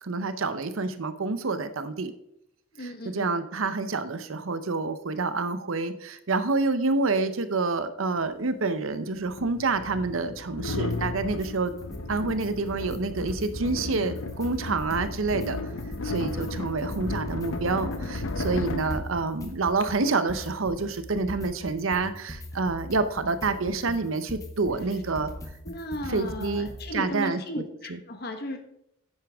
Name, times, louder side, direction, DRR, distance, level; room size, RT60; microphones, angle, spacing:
voice 1, 0.0-2.1 2.8-11.7 12.1-15.6 16.0-25.3 26.1-27.6 27.9-28.0, right 3 dB, 85° right, 11 dB, 0.8 m, -28 dB
voice 2, 2.8-3.3 25.6-28.6, equal, 50° left, 6 dB, 1.3 m, -35 dB
sound 1, 8.2-8.3 9.2-19.8, left 2 dB, 75° left, 0.8 m, -34 dB
sound 2, 10.9-11.5 11.8-12.5 12.8-15.5 15.8-26.9, left 1 dB, 15° left, 1.1 m, -41 dB
9.9 x 9.5 x 3.6 m, 0.79 s
head